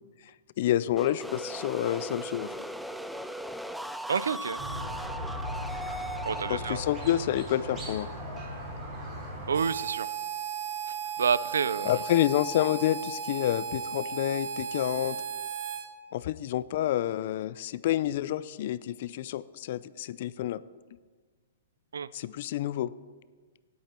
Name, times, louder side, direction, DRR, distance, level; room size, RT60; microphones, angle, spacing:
voice 1, 0.6-2.6 6.5-8.1 11.8-15.2 16.1-20.6 22.1-22.9, left 12 dB, 55° left, 17 dB, 0.5 m, -28 dB
sound 1, 1.0-8.7, right 1 dB, ahead, 0.4 m, -39 dB
voice 2, 4.1-4.6 6.3-6.8 9.5-10.1 10.9-12.0 21.9-22.1, right 6 dB, 90° right, 18 dB, 0.5 m, -29 dB
Squeak, 4.6-9.6, equal, 25° right, 4.8 m, -38 dB
Harmonica, 9.5-15.9, right 7 dB, 50° right, 1.3 m, -35 dB
17.5 x 8.5 x 4.4 m, 1.4 s
hypercardioid pair, 145°, 0 cm